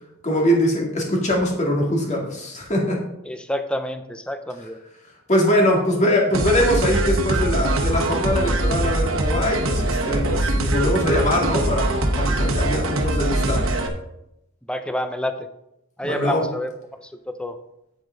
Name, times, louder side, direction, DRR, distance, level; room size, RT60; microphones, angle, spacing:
voice 1, 0.2-3.0 5.3-13.7 16.0-16.4, equal, 35° left, -1 dB, 2.3 m, -22 dB
voice 2, 3.3-4.8 14.7-15.3 16.0-16.7 17.0-17.6, equal, 5° left, 8 dB, 0.5 m, -28 dB
sound 1, 6.3-13.9, right 1 dB, 75° right, 1.2 m, -22 dB
8.3 x 8.3 x 3.9 m, 0.83 s
head